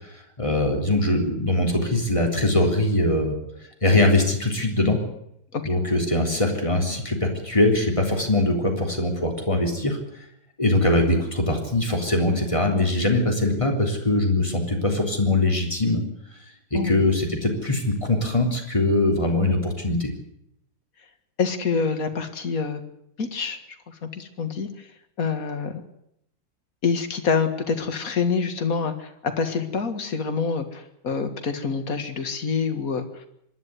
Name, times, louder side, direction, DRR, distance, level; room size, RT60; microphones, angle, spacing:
voice 1, 0.4-3.4 3.8-5.0 5.7-10.0 10.6-16.0 16.7-20.1, left 2 dB, 15° left, 1 dB, 3.6 m, -22 dB
voice 2, 21.4-22.8 23.2-23.6 23.9-24.9 25.2-25.8 26.8-33.2, left 5 dB, 45° left, 7 dB, 2.2 m, -26 dB
25.0 x 11.5 x 9.6 m, 0.77 s
omnidirectional pair, 2.2 m